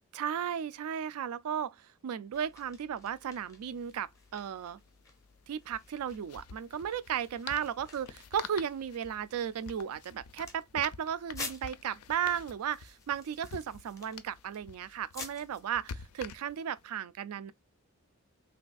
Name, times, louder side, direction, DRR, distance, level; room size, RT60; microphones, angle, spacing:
voice 1, 0.1-1.8 2.0-4.8 5.5-17.5, right 8 dB, 85° right, 0.3 m, -35 dB
sound 1, 2.3-15.7, left 3 dB, 15° left, 0.5 m, -50 dB
sound 2, 3.7-3.8 4.0-4.1 5.6-16.8, left 6 dB, 90° left, 0.4 m, -48 dB
3.3 x 2.3 x 2.3 m
head